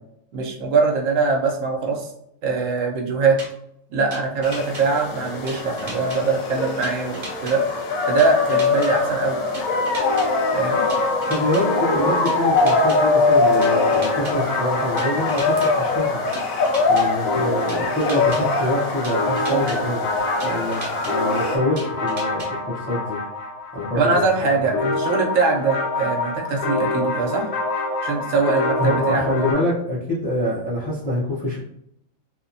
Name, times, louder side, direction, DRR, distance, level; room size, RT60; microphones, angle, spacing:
voice 1, 0.3-2.1 2.4-3.4 3.9-7.6 8.1-9.4 10.5-10.8 23.9-27.5 28.0-29.2, right 4 dB, 75° right, 0 dB, 1.0 m, -22 dB
sound 1, 3.4-3.5 4.1-4.8 5.5-6.2 6.8-7.5 8.2-8.9 9.5-10.3 10.9-11.6 12.3-13.0 13.6-14.3 15.0-15.7 16.3-17.0 17.7-18.4 19.0-19.8 20.4-21.1 21.8-22.5, right 2 dB, 45° right, 0.8 m, -35 dB
sound 2, 4.4-21.6, left 3 dB, 85° left, 1.0 m, -23 dB
sound 3, 10.0-29.5, left 2 dB, 65° left, 0.7 m, -27 dB
voice 2, 11.3-16.2 16.9-23.2 23.7-24.7 28.8-31.6, left 1 dB, 10° left, -7 dB, 0.4 m, -25 dB
2.9 x 2.1 x 2.6 m, 0.74 s
omnidirectional pair, 1.4 m